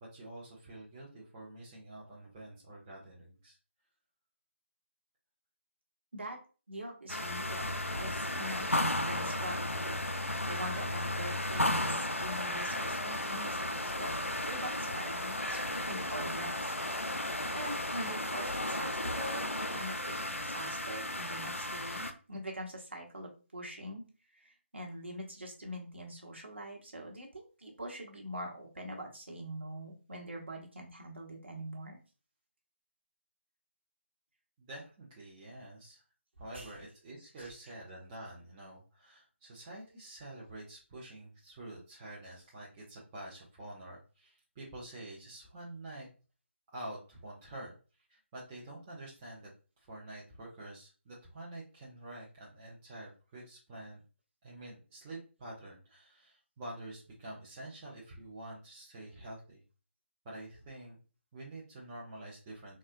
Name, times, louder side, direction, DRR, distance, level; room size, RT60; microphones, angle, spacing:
voice 1, 0.0-3.6 34.6-36.0 36.4-46.1 46.7-47.7 48.1-49.5 49.8-54.0 54.4-59.6 60.2-61.0 61.3-62.8, right 1 dB, 10° right, -6 dB, 0.3 m, -47 dB
voice 2, 6.7-10.0 10.5-14.1 14.4-17.2 17.5-24.0 24.3-32.0 36.5-36.7 37.4-37.5, right 1 dB, 60° right, 0 dB, 0.9 m, -43 dB
sound 1, 7.1-22.1, left 1 dB, 90° left, 0.4 m, -34 dB
3.7 x 2.1 x 2.4 m, 0.35 s
figure-of-eight pair, 155°, 7 cm